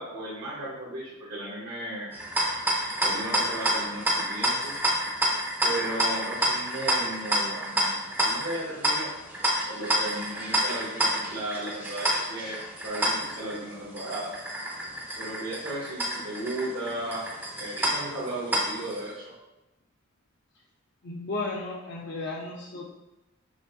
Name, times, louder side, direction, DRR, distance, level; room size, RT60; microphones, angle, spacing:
voice 1, 0.0-2.1 3.0-4.7 5.6-9.1 9.7-14.3 15.2-17.2 17.5-19.3, right 1 dB, 70° right, -10 dB, 1.1 m, -35 dB
sound 1, 2.1-19.0, equal, 10° right, 0.5 m, -28 dB
voice 2, 21.0-22.9, left 2 dB, 55° left, -3 dB, 0.5 m, -34 dB
6.1 x 2.6 x 2.5 m, 0.99 s
head